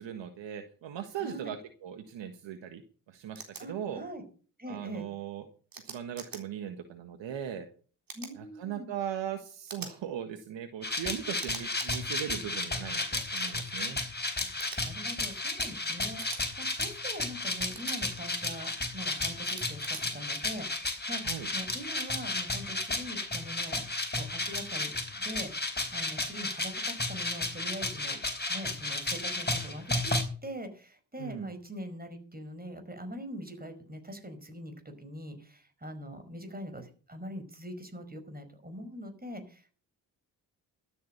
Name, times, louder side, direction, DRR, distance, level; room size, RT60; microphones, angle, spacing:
voice 1, 0.0-2.8 3.1-3.4 3.7-4.0 4.7-5.5 5.8-7.7 8.4-14.0 21.2-21.5 31.2-31.5, right 9 dB, 65° right, 8 dB, 1.6 m, -38 dB
voice 2, 1.1-1.5 3.6-4.2 4.6-5.0 8.1-8.9 14.4-14.5 14.8-21.2 21.5-23.8 24.2-24.9 25.2-28.2 28.5-30.1 30.4-39.8, equal, 20° right, 7 dB, 5.0 m, -43 dB
sound 1, 3.4-3.6 5.7-6.4 8.1-8.3 9.7-9.9 11.4-12.0 13.3-13.5 14.6-14.8 16.2-16.4 17.7-18.0 19.4-20.0, right 5 dB, 45° right, 4.0 m, -43 dB
sound 2, 10.8-30.2, left 2 dB, 20° left, 4.4 m, -33 dB
12.5 x 8.7 x 6.8 m, 0.41 s
hypercardioid pair, 45°, 48 cm